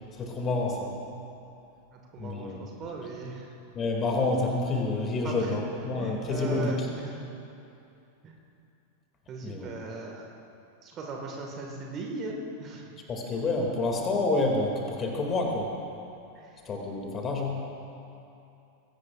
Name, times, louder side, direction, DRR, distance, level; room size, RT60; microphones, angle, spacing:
voice 1, 0.1-0.9 2.2-2.6 3.7-6.7 9.4-9.7 13.1-15.7 16.6-17.7, left 2 dB, 25° left, 0 dB, 2.6 m, -28 dB
voice 2, 1.9-3.5 5.2-5.6 6.0-7.2 8.2-8.3 9.3-10.3 10.8-13.0 16.3-16.6, right 3 dB, 30° right, 0 dB, 1.9 m, -38 dB
21.5 x 17.0 x 2.6 m, 2.7 s
figure-of-eight pair, 90°, 0 cm